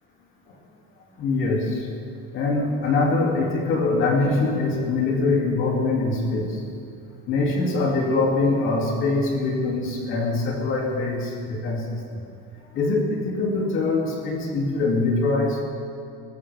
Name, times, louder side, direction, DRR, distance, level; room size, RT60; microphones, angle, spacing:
voice 1, 1.2-1.9 2.3-6.6 7.3-12.2 12.7-15.6, left 3 dB, 40° left, 0 dB, 2.4 m, -23 dB
21.0 x 13.5 x 3.4 m, 2.4 s
cardioid pair, 170°, 31 cm